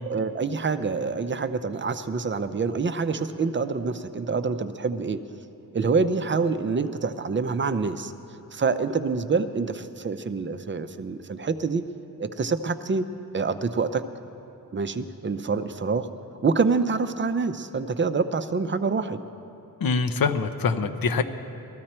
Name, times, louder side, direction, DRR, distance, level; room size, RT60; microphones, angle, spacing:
voice 1, 0.0-5.2 5.7-8.1 8.5-11.8 12.2-13.1 13.3-14.0 14.7-16.1 16.4-19.2, right 4 dB, 30° right, 10 dB, 0.6 m, -26 dB
voice 2, 19.8-21.2, left 4 dB, 70° left, 7 dB, 0.8 m, -24 dB
18.5 x 14.0 x 4.4 m, 2.8 s
wide cardioid pair, 110°, 36 cm